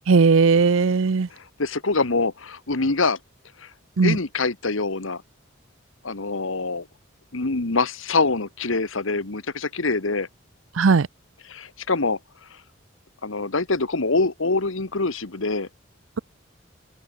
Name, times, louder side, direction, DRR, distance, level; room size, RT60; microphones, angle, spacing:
voice 1, 0.1-1.3 4.0-4.2 10.8-11.1, right 4 dB, 75° right, 0.6 m, -17 dB
voice 2, 1.4-3.2 3.6-3.7 4.0-5.2 6.0-6.9 7.3-10.3 11.5-12.2 13.2-15.7, left 3 dB, 75° left, 1.5 m, -24 dB
open air
head